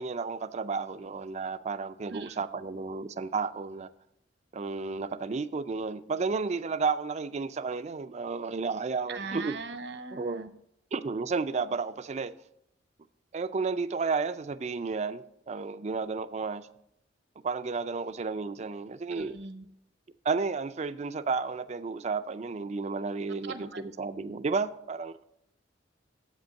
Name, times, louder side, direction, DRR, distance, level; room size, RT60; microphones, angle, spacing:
voice 1, 0.0-3.9 4.5-9.5 10.1-10.4 10.9-12.3 13.3-16.7 17.4-19.4 20.2-25.2, right 4 dB, 40° right, 0.4 m, -32 dB
voice 2, 9.1-10.5 19.2-19.6 23.4-23.8, right 4 dB, 65° right, 0.7 m, -40 dB
7.6 x 5.2 x 6.4 m
head